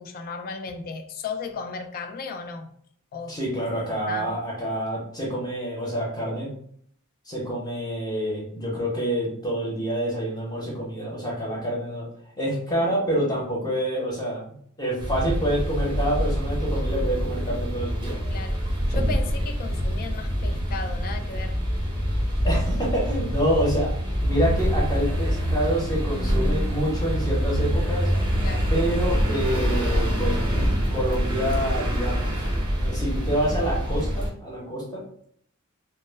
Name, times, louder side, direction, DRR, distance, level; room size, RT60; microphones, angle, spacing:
voice 1, 0.0-2.7 3.1-3.4 4.1-4.3 18.3-21.6 28.4-28.7, left 4 dB, 40° left, 0.3 m, -35 dB
voice 2, 3.3-6.5 7.3-12.1 12.4-18.2 22.4-23.9 24.2-28.1 28.7-30.4 30.9-32.5 32.8-35.0, right 1 dB, 15° left, 0.7 m, -27 dB
sound 1, 15.0-34.3, equal, 20° right, 0.6 m, -25 dB
2.1 x 2.0 x 3.2 m
head